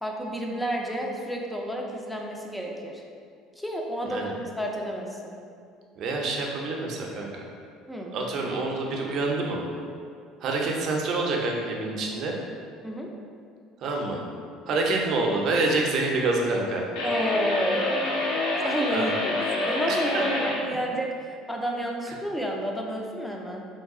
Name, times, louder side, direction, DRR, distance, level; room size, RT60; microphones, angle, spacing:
voice 1, 0.0-3.0 3.6-5.4 7.9-8.1 12.8-13.1 17.0-18.3 18.6-23.6, equal, 5° left, 0 dB, 0.4 m, -30 dB
voice 2, 6.0-7.5 8.1-9.6 10.4-12.3 13.8-14.2 14.7-16.9 18.9-19.0 19.9-20.2, right 2 dB, 55° right, 0 dB, 0.5 m, -27 dB
sound 1, 17.0-20.6, left 2 dB, 75° left, 0.7 m, -27 dB
3.1 x 2.3 x 3.6 m, 2.3 s
supercardioid pair, 110°, 0 cm